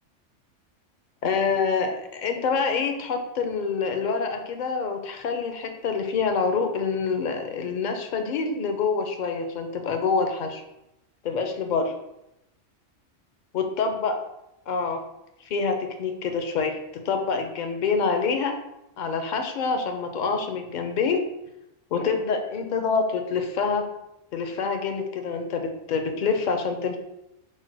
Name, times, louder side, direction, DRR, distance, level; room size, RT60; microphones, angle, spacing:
voice 1, 1.2-10.6 11.2-11.9 13.5-14.2 14.7-15.0 15.4-18.5 19.0-21.2 21.9-23.8 24.3-27.0, left 5 dB, 60° left, 5 dB, 0.5 m, -26 dB
4.3 x 2.1 x 4.5 m, 0.86 s
omnidirectional pair, 1.3 m